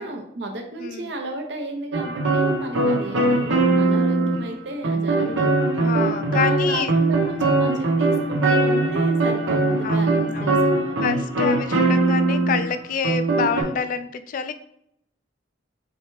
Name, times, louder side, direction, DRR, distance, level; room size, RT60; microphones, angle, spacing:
voice 1, 0.0-5.6 6.5-11.0, right 2 dB, 60° right, 3 dB, 0.7 m, -34 dB
voice 2, 0.8-1.1 5.8-6.9 9.8-10.7 11.0-14.5, left 6 dB, 45° left, 10 dB, 0.3 m, -27 dB
sound 1, 1.9-4.5 4.8-12.7 13.0-13.6, right 2 dB, 85° right, 1.1 m, -21 dB
3.9 x 3.4 x 3.1 m, 0.74 s
head